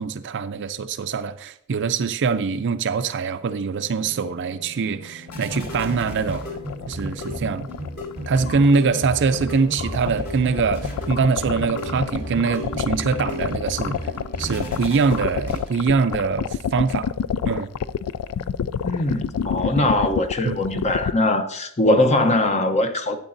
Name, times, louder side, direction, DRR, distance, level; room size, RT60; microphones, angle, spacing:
voice 1, 0.0-6.4 6.9-7.7 8.3-14.0 14.4-17.1 17.4-17.7 19.8-19.9 20.4-20.6, right 5 dB, 55° right, 0.5 m, -23 dB
sound 1, 3.4-16.0, equal, 45° left, 3.0 m, -33 dB
sound 2, 5.3-21.1, left 7 dB, 70° left, 0.3 m, -28 dB
voice 2, 18.8-23.2, left 1 dB, 30° left, 0.8 m, -21 dB
12.5 x 8.8 x 2.6 m
head